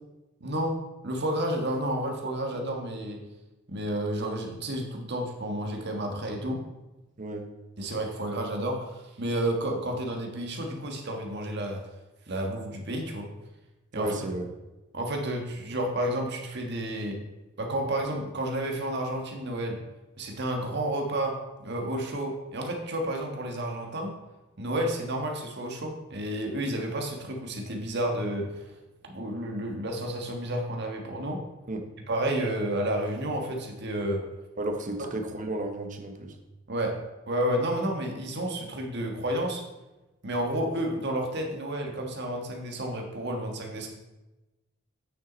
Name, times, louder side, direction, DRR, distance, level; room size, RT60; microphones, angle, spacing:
voice 1, 0.4-0.8 1.0-3.2 3.7-6.6 7.8-11.8 12.3-13.3 13.9-14.2 14.9-17.2 17.6-19.8 20.2-24.2 24.6-28.5 29.1-31.4 32.1-34.2 35.0-35.1 36.7-37.0 37.3-39.6 40.2-43.9, right 1 dB, 55° right, 2 dB, 1.5 m, -31 dB
voice 2, 7.2-7.5 13.9-14.5 31.7-31.9 34.6-36.4, right 1 dB, 40° right, 4 dB, 1.0 m, -33 dB
8.7 x 6.4 x 4.0 m, 1.1 s
head